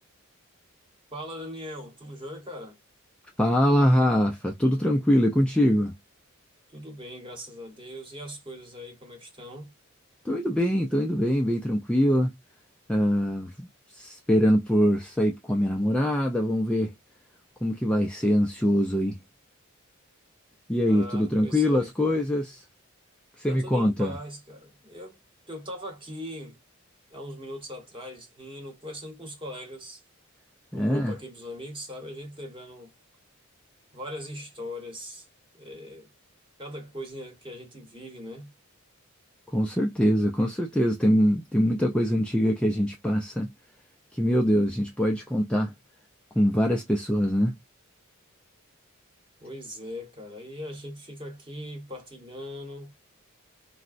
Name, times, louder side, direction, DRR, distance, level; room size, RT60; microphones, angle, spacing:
voice 1, 1.1-2.8 6.7-9.7 20.8-21.9 23.5-25.2 25.5-26.6 27.1-30.0 30.7-32.9 33.9-35.3 35.5-36.1 36.6-38.5 49.4-52.9, equal, 25° right, 1.1 m, -40 dB
voice 2, 3.4-5.9 10.2-12.3 12.9-13.7 13.9-16.9 17.6-19.2 20.7-22.6 23.4-24.2 30.7-31.1 39.5-43.5 44.1-45.7 46.4-47.5, equal, 5° left, 0.3 m, -23 dB
3.9 x 2.1 x 2.5 m
head